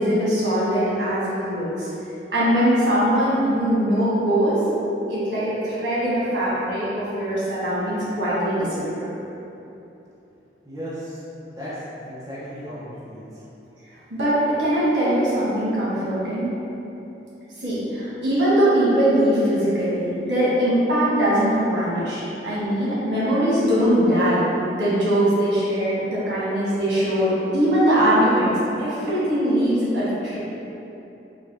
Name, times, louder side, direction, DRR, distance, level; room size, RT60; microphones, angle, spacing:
voice 1, 0.0-1.9 2.3-4.6 5.1-9.1 14.1-16.5 17.6-28.5 28.8-30.4, equal, 90° right, -9 dB, 1.2 m, -21 dB
voice 2, 10.6-11.2 11.6-13.4, equal, 20° right, -10 dB, 0.6 m, -35 dB
3.8 x 2.3 x 3.3 m, 3.0 s
head